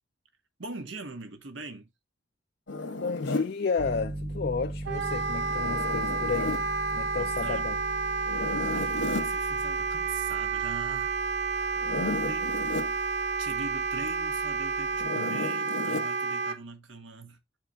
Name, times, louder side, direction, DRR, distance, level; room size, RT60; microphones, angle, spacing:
voice 1, 0.6-1.9 7.2-7.7 8.7-11.1 12.2-12.6 13.4-17.4, right 3 dB, 85° right, 1.4 m, -42 dB
Zipper (clothing), 2.7-3.5 5.5-6.7 8.3-9.3 11.7-12.9 15.0-16.1, left 2 dB, 85° left, 1.5 m, -33 dB
voice 2, 3.0-6.6 6.9-7.8, left 5 dB, 55° left, 0.4 m, -31 dB
Piano, 3.8-15.1, right 1 dB, 20° right, 0.4 m, -40 dB
Wind instrument woodwind instrument, 4.9-16.6, right 4 dB, 60° right, 0.7 m, -30 dB
13.0 x 4.6 x 2.3 m
head